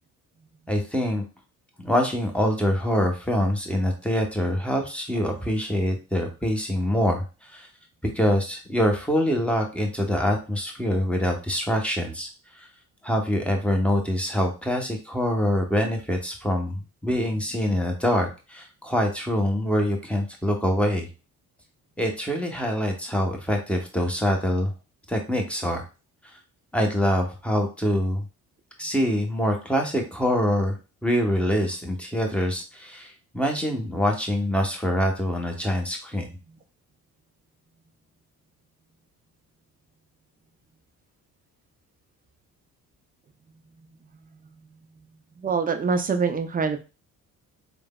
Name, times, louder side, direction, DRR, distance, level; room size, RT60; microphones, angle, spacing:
voice 1, 0.7-1.2 1.8-7.7 8.1-12.3 12.6-12.7 13.0-21.1 22.0-24.7 25.1-25.8 26.7-28.2 28.8-30.8 31.0-36.3, equal, 5° left, 2 dB, 0.8 m, -25 dB
voice 2, 45.4-46.8, right 5 dB, 20° right, 7 dB, 0.3 m, -24 dB
3.3 x 2.0 x 2.2 m, 0.31 s
hypercardioid pair, 45°, 44 cm